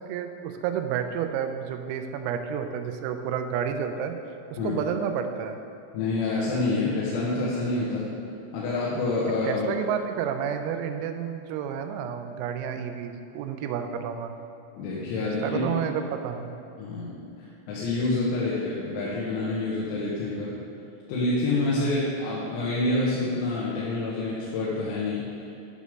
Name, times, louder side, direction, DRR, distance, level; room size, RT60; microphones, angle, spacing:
voice 1, 0.0-4.2 4.5-5.6 9.5-14.4 15.2-16.5 21.8-22.0, right 8 dB, 90° right, 6 dB, 3.4 m, -30 dB
voice 2, 5.9-8.1 8.5-9.7 14.8-15.7 16.8-17.2 17.7-20.6 21.1-25.3, left 2 dB, 85° left, -7 dB, 4.1 m, -27 dB
11.5 x 5.1 x 6.6 m, 2.7 s
omnidirectional pair, 6.0 m